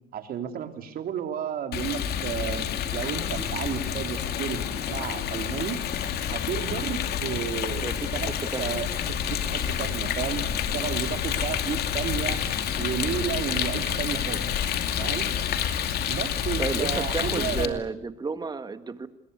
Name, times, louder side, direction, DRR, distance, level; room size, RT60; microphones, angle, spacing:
voice 1, 0.1-5.8 6.3-7.8 8.1-8.9 9.3-12.4 12.7-14.4 15.0-15.3 16.1-17.8, right 8 dB, 60° right, 7 dB, 3.4 m, -32 dB
Rain, 1.7-17.7, left 9 dB, 70° left, 2.5 m, -29 dB
voice 2, 7.8-8.7 16.6-19.1, right 4 dB, 25° right, 11 dB, 1.8 m, -32 dB
26.5 x 21.5 x 8.3 m, 0.76 s
cardioid pair, 110°, 17 cm